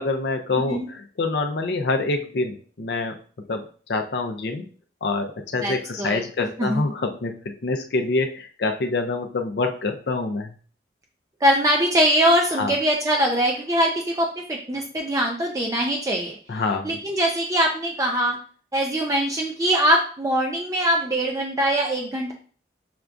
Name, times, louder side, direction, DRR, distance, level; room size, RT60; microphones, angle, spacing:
voice 1, 0.0-3.1 3.5-3.6 3.9-4.6 5.0-10.5 12.6-12.7 16.5-16.9, left 3 dB, 70° left, 5 dB, 0.5 m, -26 dB
voice 2, 5.6-6.8 11.4-16.4 16.8-18.4 18.7-22.3, equal, 20° right, 0 dB, 0.4 m, -22 dB
5.8 x 2.3 x 2.5 m, 0.42 s
head